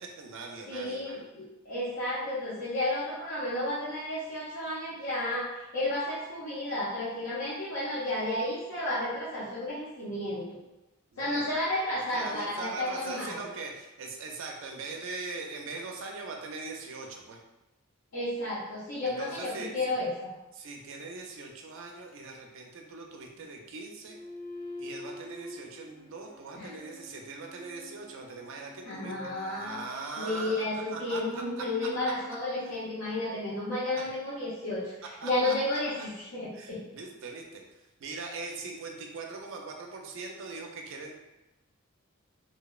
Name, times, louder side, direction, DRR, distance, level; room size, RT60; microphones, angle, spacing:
voice 1, 0.0-1.2 11.1-11.7 12.1-17.4 19.0-19.9 20.5-24.2 24.8-31.9 32.7-32.8 34.0-34.1 35.0-35.8 36.5-41.1, right 3 dB, 65° right, 1 dB, 0.4 m, -41 dB
voice 2, 0.7-10.4 11.2-13.4 18.1-20.3 26.5-26.7 28.9-29.8 30.2-34.9 35.2-36.8, left 1 dB, 65° left, -10 dB, 0.6 m, -32 dB
sound 1, 24.0-33.7, left 1 dB, 15° left, 0.3 m, -47 dB
2.6 x 2.0 x 2.3 m, 1.0 s
head